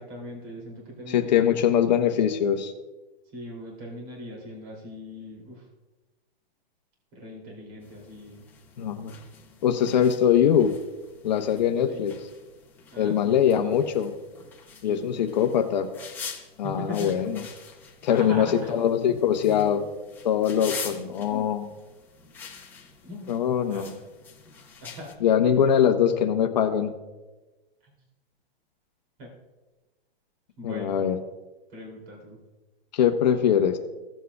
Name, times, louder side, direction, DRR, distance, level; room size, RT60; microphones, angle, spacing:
voice 1, 0.0-1.6 3.3-5.6 7.1-8.5 11.9-12.0 12.9-13.8 14.8-15.4 16.6-17.1 18.1-18.7 21.3-21.5 23.0-23.4 23.7-24.0 24.8-25.1 27.8-27.9 29.2-29.3 30.6-31.0 31.7-32.4, left 1 dB, 35° right, -1 dB, 2.8 m, -40 dB
voice 2, 1.1-2.7 8.8-9.2 9.6-10.8 11.2-12.1 13.0-14.1 14.8-15.9 16.6-17.4 18.0-19.9 20.2-21.7 23.3-23.9 25.2-26.9 30.6-31.2 32.9-33.8, left 9 dB, 45° left, 6 dB, 0.7 m, -22 dB
sound 1, 7.8-25.1, left 6 dB, 5° left, 0.7 m, -45 dB
16.0 x 7.4 x 2.3 m, 1.1 s
hypercardioid pair, 165°, 30 cm